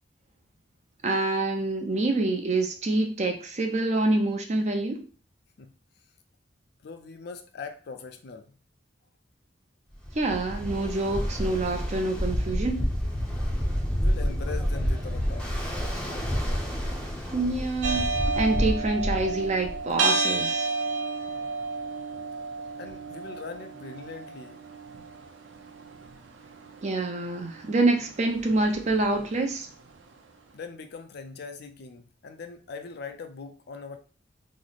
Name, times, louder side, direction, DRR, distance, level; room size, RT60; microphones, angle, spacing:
voice 1, 1.0-5.0 10.1-12.9 17.3-18.1 18.4-20.7 26.8-29.7, right 2 dB, 40° right, 0.6 m, -26 dB
voice 2, 6.8-8.6 14.0-15.5 22.8-24.6 30.5-34.0, left 4 dB, 60° left, 0.4 m, -41 dB
Ocean, 10.0-19.9, equal, 5° left, 0.6 m, -29 dB
sound 1, 17.8-29.9, right 3 dB, 90° right, 0.6 m, -32 dB
3.1 x 2.0 x 3.9 m
head